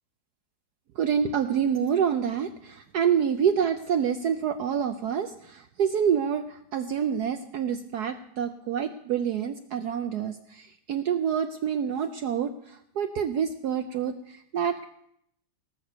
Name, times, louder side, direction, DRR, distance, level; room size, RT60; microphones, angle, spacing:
voice 1, 0.9-14.9, right 8 dB, 75° right, 9 dB, 0.9 m, -27 dB
18.0 x 6.7 x 6.9 m, 0.74 s
omnidirectional pair, 2.3 m